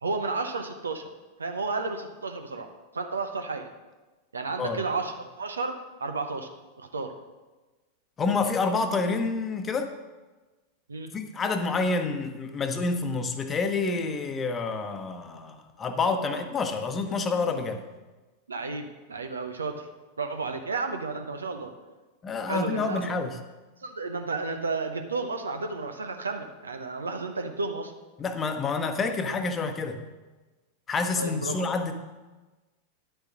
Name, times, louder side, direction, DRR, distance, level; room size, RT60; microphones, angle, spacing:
voice 1, 0.0-1.1 1.4-2.7 2.9-3.7 4.3-6.5 6.8-7.1 10.9-11.1 16.3-16.4 18.5-19.9 20.2-21.7 22.5-23.0 23.8-27.9 31.2-31.7, right 3 dB, 75° right, 6 dB, 0.9 m, -32 dB
voice 2, 8.2-9.9 11.1-17.8 22.2-23.4 28.2-30.0 30.9-31.9, left 4 dB, 20° left, 7 dB, 1.0 m, -28 dB
10.0 x 6.7 x 6.3 m, 1.2 s
figure-of-eight pair, 90°, 0 cm